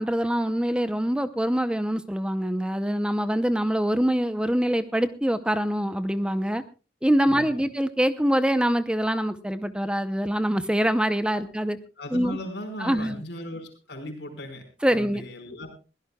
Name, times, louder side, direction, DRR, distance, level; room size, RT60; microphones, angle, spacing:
voice 1, 0.0-6.6 7.0-11.8 12.1-12.4 12.8-13.2 14.8-15.2, equal, 5° right, 11 dB, 0.6 m, -24 dB
voice 2, 7.2-7.6 12.0-14.6 14.9-15.7, left 1 dB, 70° left, 4 dB, 4.8 m, -37 dB
22.5 x 16.5 x 2.3 m, 0.32 s
head